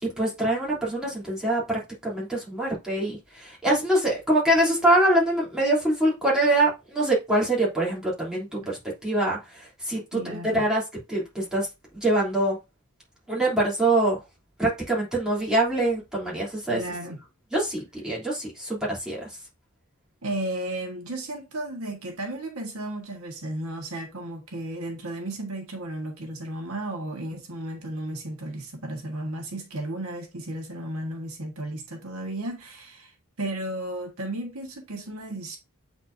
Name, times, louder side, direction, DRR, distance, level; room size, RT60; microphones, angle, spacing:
voice 1, 0.0-10.8 11.1-11.7 11.9-12.6 13.3-14.2 14.6-16.8 17.5-19.3, right 1 dB, 5° right, 3.0 m, -24 dB
voice 2, 10.1-10.6 16.7-17.2 20.2-35.6, right 1 dB, 70° right, 1.5 m, -34 dB
8.2 x 4.3 x 2.7 m
head